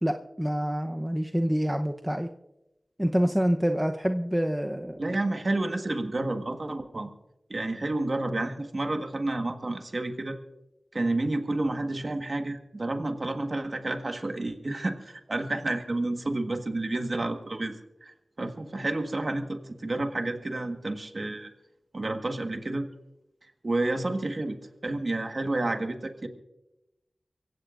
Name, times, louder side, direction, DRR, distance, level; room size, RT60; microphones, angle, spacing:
voice 1, 0.0-2.3 3.0-5.0, equal, 10° right, 4 dB, 0.8 m, -27 dB
voice 2, 5.0-7.1 7.5-10.4 10.9-21.5 21.9-22.9 23.6-24.6 24.8-26.3, right 2 dB, 55° right, 6 dB, 1.5 m, -30 dB
24.5 x 16.0 x 2.5 m, 0.93 s
cardioid pair, 45°, 0 cm